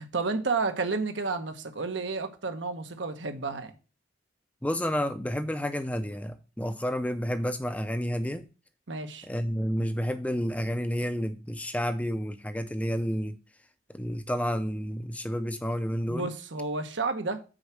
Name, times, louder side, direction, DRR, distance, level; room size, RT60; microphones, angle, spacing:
voice 1, 0.0-3.7 8.9-9.3 16.1-17.4, right 4 dB, 80° right, 1.0 m, -31 dB
voice 2, 4.6-8.5 9.3-13.3 13.9-16.3, equal, 10° left, 0.5 m, -30 dB
6.4 x 4.5 x 6.1 m
head